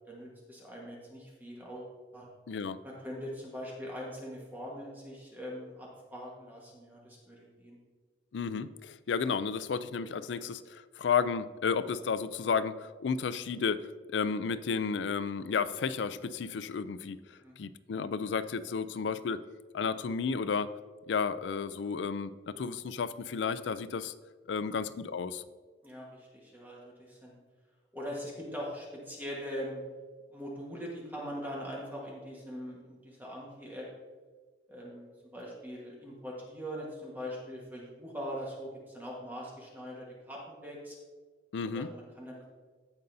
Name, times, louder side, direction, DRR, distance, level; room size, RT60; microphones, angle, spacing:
voice 1, 0.1-2.3 2.8-7.8 17.4-17.5 25.8-27.4 27.9-29.8 30.3-33.9 34.7-35.1 35.3-41.0 41.7-42.5, equal, 10° right, -4 dB, 1.4 m, -42 dB
voice 2, 2.5-2.8 8.3-19.4 19.7-20.7 21.1-24.1 24.5-25.4 41.5-41.9, left 5 dB, 85° left, 14 dB, 0.4 m, -32 dB
16.0 x 5.4 x 2.7 m, 1.5 s
head